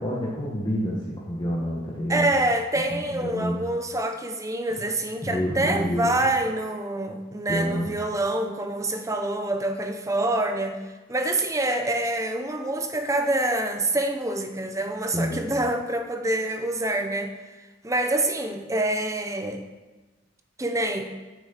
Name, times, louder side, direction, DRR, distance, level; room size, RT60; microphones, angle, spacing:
voice 1, 0.0-2.3 3.2-3.5 5.2-6.1 7.5-7.9 15.1-15.5, equal, 20° left, -5 dB, 1.5 m, -28 dB
voice 2, 2.1-17.3 17.8-19.6 20.6-21.1, right 1 dB, 15° right, 6 dB, 0.7 m, -26 dB
9.8 x 6.2 x 7.3 m, 1.2 s
head